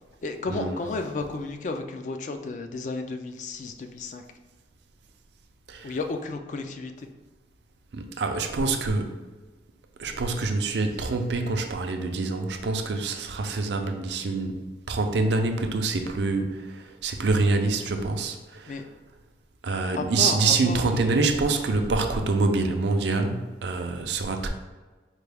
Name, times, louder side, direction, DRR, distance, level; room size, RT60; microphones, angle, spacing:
voice 1, 0.2-4.2 5.8-7.1 18.7-18.8 20.0-21.3, left 3 dB, 45° left, 6 dB, 0.3 m, -33 dB
voice 2, 7.9-9.2 10.0-18.8 19.6-24.5, right 3 dB, 75° right, 5 dB, 0.4 m, -26 dB
4.5 x 2.3 x 3.3 m, 1.3 s
head